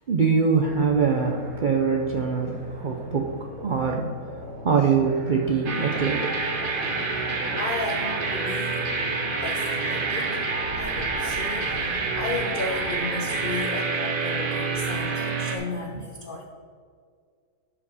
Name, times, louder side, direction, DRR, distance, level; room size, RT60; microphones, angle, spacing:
voice 1, 0.1-3.3 3.6-4.1 4.6-6.3 15.9-16.0, right 5 dB, 80° right, 1 dB, 0.4 m, -23 dB
sound 1, 0.6-13.3, equal, 65° right, 1.7 m, -41 dB
voice 2, 3.3-3.9 4.8-5.0 6.9-7.2 7.6-9.1 9.4-10.4 10.8-16.4, left 3 dB, 60° left, 1 dB, 0.5 m, -34 dB
sound 2, 5.6-15.6, right 4 dB, 40° right, 0.8 m, -27 dB
10.5 x 5.2 x 4.1 m, 2.1 s
omnidirectional pair, 1.7 m